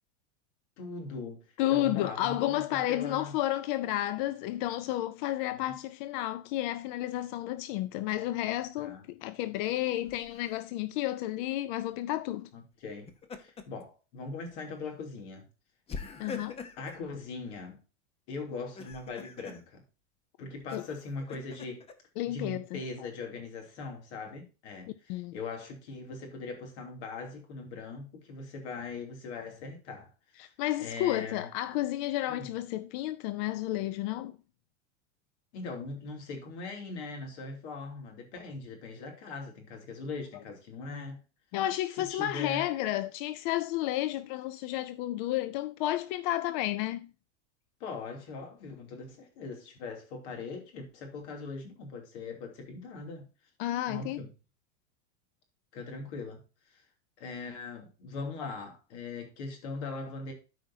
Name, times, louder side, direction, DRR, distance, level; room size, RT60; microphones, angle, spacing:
voice 1, 0.8-1.4 1.7-3.3 5.5-5.7 8.8-9.0 12.5-13.1 13.4-15.4 16.8-17.8 18.3-19.8 20.4-21.8 22.3-30.1 30.4-30.5 30.8-31.5 32.3-32.5 35.5-41.2 42.0-42.7 47.8-53.3 53.9-54.3 55.7-56.8 57.2-60.3, left 3 dB, 65° left, 2.9 m, -41 dB
voice 2, 1.6-12.5 16.2-16.6 20.7-20.9 22.2-23.1 25.1-25.4 30.4-34.3 41.5-47.1 53.6-54.2, left 14 dB, 45° left, 0.4 m, -31 dB
Laughter, 10.0-10.6 12.9-13.8 14.2-14.4 15.9-17.0 18.6-19.6 20.7-21.9, left 5 dB, 15° left, 0.7 m, -43 dB
13.0 x 5.1 x 2.7 m
supercardioid pair, 150°, 36 cm